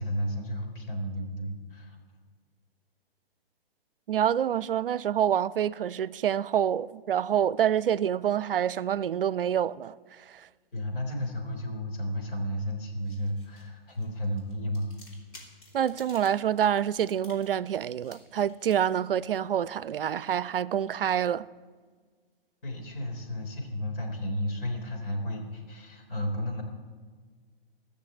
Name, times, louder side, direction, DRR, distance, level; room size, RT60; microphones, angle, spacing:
voice 1, 0.0-2.0 10.7-14.9 22.6-26.6, equal, 65° left, 4.1 m, -33 dB
voice 2, 4.1-10.5 15.7-21.5, right 9 dB, 65° right, 0.5 m, -27 dB
sound 1, 12.8-21.2, left 1 dB, 25° left, 3.4 m, -56 dB
17.5 x 6.6 x 7.7 m
figure-of-eight pair, 125°, 30 cm